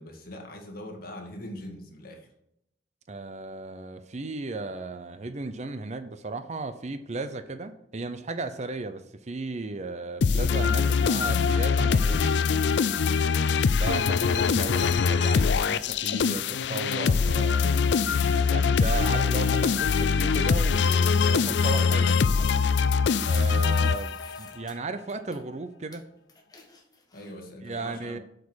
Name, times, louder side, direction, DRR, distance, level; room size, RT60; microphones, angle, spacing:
voice 1, 0.0-2.3 21.1-22.6 27.1-28.2, left 1 dB, 55° left, 1 dB, 2.1 m, -41 dB
voice 2, 3.1-12.3 13.7-17.8 18.4-21.3 21.6-22.1 23.2-26.0 27.6-28.2, right 3 dB, 40° right, 10 dB, 0.6 m, -35 dB
sound 1, 10.2-24.5, left 5 dB, 70° left, 0.4 m, -23 dB
sound 2, 19.7-19.9 21.9-24.7 25.1-25.4 25.9-26.0 26.3-27.5, left 3 dB, 20° left, 1.5 m, -50 dB
8.2 x 5.4 x 6.3 m, 0.77 s
head